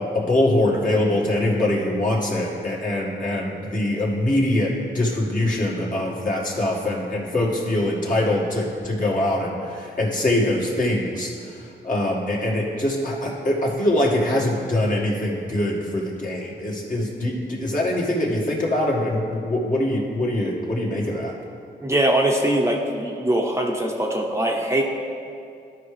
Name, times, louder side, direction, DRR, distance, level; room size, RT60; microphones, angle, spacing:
voice 1, 0.0-11.3 11.8-21.3, left 1 dB, 45° left, -4 dB, 1.9 m, -23 dB
voice 2, 21.8-24.8, right 1 dB, 15° right, -1 dB, 0.9 m, -22 dB
12.5 x 4.9 x 3.3 m, 2.4 s
cardioid pair, 60°, 20 cm